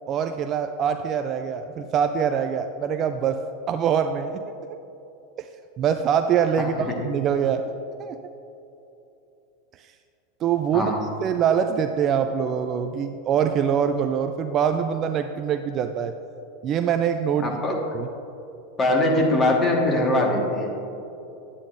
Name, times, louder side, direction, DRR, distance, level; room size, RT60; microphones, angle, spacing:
voice 1, 0.1-3.4 3.7-4.5 5.4-5.5 5.8-6.7 7.0-7.7 8.0-8.2 9.8-9.9 10.4-10.9 11.2-16.1 16.6-17.6 17.9-18.1, right 8 dB, 40° right, 7 dB, 0.4 m, -24 dB
voice 2, 17.4-17.8 18.8-20.7, left 1 dB, 25° left, 0 dB, 1.6 m, -21 dB
9.7 x 9.0 x 2.6 m, 2.8 s
hypercardioid pair, 105°, 0 cm